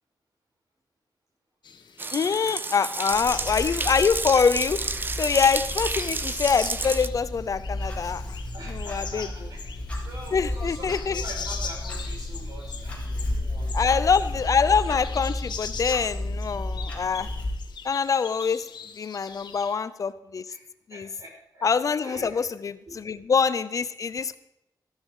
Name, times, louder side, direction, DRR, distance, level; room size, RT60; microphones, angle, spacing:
sound 1, 1.6-19.8, left 6 dB, 85° left, 1.5 m, -42 dB
sound 2, 2.0-7.1, right 3 dB, 30° right, 0.6 m, -31 dB
voice 1, 2.1-4.8 5.1-8.4 8.7-9.3 10.3-11.2 13.7-17.3 17.8-18.7 19.0-20.5 20.9-21.1 21.6-24.4, left 6 dB, 50° left, 14 dB, 0.6 m, -25 dB
Clock, 3.1-17.5, left 1 dB, 15° left, 4.0 m, -33 dB
voice 2, 8.5-13.9 20.5-20.6 20.9-21.6 22.0-22.4 22.9-23.0, right 1 dB, 60° right, -1 dB, 5.8 m, -44 dB
14.0 x 12.5 x 4.9 m, 0.83 s
wide cardioid pair, 155°, 7 cm